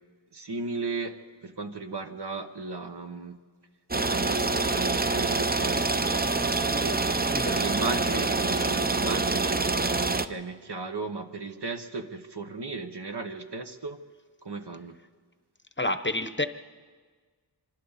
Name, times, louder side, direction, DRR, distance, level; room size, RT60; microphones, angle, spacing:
voice 1, 0.3-3.4 4.0-6.1 6.7-7.0 7.4-9.6 10.1-14.0 14.4-15.0, right 4 dB, 65° right, 7 dB, 1.3 m, -36 dB
sound 1, 3.9-10.3, right 3 dB, 20° right, 0.6 m, -26 dB
voice 2, 7.3-7.8 8.1-8.2 15.8-16.5, left 2 dB, 25° left, 11 dB, 0.8 m, -29 dB
25.5 x 25.0 x 4.1 m, 1.5 s
wide cardioid pair, 50°, 44 cm